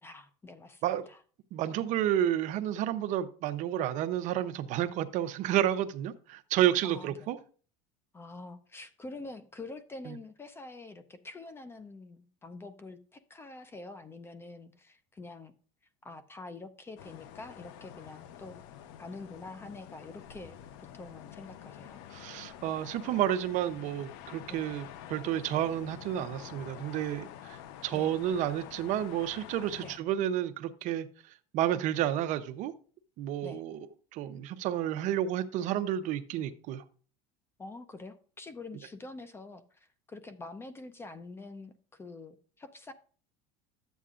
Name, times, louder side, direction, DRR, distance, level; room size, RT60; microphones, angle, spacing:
voice 1, 0.0-0.8 1.1-1.2 6.8-7.3 8.1-15.5 16.0-18.6 19.0-20.6 20.9-22.0 24.5-24.6 27.9-28.1 29.8-29.9 32.0-32.1 33.4-33.6 37.6-42.9, left 3 dB, 15° left, 12 dB, 0.5 m, -46 dB
voice 2, 1.5-7.4 10.1-10.2 22.1-27.3 27.8-31.1 31.5-32.7 33.2-33.8 34.1-36.8, right 11 dB, 45° right, 11 dB, 0.7 m, -30 dB
sound 1, 17.0-30.0, left 10 dB, 65° left, 0.7 m, -48 dB
12.0 x 8.1 x 2.5 m, 0.41 s
cardioid pair, 155°, 17 cm